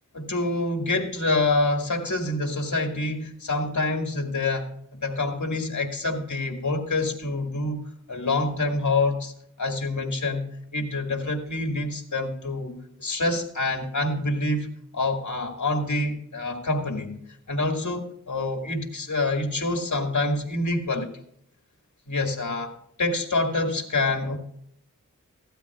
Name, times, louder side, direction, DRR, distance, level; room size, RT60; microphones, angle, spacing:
voice 1, 0.1-7.8 8.1-9.3 9.6-10.4 10.7-14.7 14.9-17.2 17.5-21.1 22.1-22.7 23.0-24.4, left 2 dB, 65° left, 4 dB, 1.9 m, -26 dB
16.0 x 12.5 x 2.3 m, 0.69 s
wide cardioid pair, 50°, 32 cm